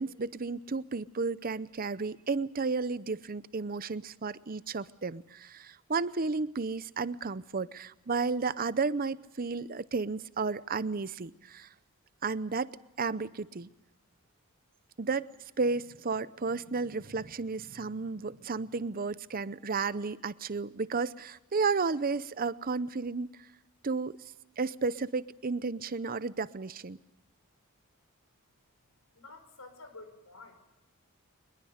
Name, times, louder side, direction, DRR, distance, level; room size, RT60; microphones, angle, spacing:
voice 1, 0.0-11.7 12.2-12.7 13.0-13.7 15.0-15.3 15.6-23.3 23.8-24.2 24.6-27.0, right 4 dB, 40° right, 16 dB, 0.7 m, -33 dB
voice 2, 29.1-30.8, left 3 dB, 85° left, 9 dB, 5.1 m, -50 dB
23.5 x 21.5 x 6.5 m, 0.94 s
head